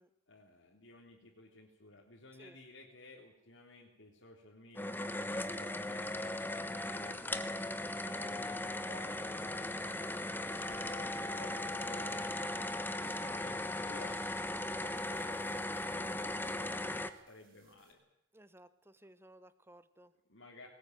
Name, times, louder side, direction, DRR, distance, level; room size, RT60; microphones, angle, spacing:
voice 1, 0.3-6.1 6.7-10.0 10.5-18.0 20.3-20.7, left 2 dB, 80° left, -2 dB, 3.4 m, -56 dB
sound 1, 4.7-17.1, left 1 dB, 10° left, 1.0 m, -38 dB
voice 2, 6.9-7.3 18.3-20.1, right 1 dB, 10° right, 14 dB, 1.1 m, -58 dB
sound 2, 10.5-17.9, right 4 dB, 50° right, 5.2 m, -65 dB
20.0 x 19.5 x 9.3 m, 0.85 s
head